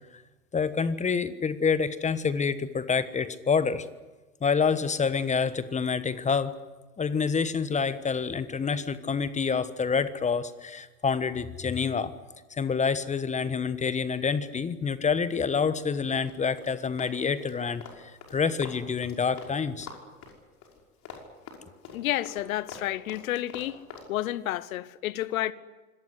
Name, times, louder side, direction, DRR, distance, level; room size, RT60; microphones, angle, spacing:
voice 1, 0.5-3.9 4.4-6.5 7.0-12.1 12.5-19.9, left 5 dB, 15° left, 1.2 m, -27 dB
Run, 16.2-19.6 19.8-24.1, left 6 dB, 35° left, 5.5 m, -45 dB
voice 2, 21.9-23.8 24.1-25.5, left 14 dB, 65° left, 1.2 m, -30 dB
25.5 x 18.0 x 9.8 m
hypercardioid pair, 95°, 45 cm